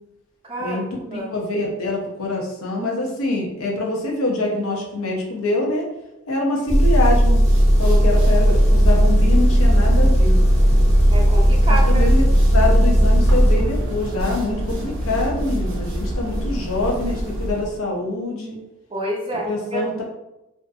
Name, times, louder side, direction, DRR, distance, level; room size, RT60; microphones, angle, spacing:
voice 1, 0.4-0.8 1.1-1.3 11.1-12.0 18.9-19.8, right 1 dB, 25° right, -2 dB, 0.5 m, -28 dB
voice 2, 1.1-5.9 6.3-7.4 7.8-10.4 11.7-18.6 19.4-20.0, left 2 dB, 65° left, -1 dB, 0.6 m, -25 dB
Engine, 6.7-13.6, equal, 30° left, 0.6 m, -15 dB
sound 1, 7.2-17.8, equal, 60° right, 0.7 m, -26 dB
2.5 x 2.3 x 2.5 m, 0.93 s
head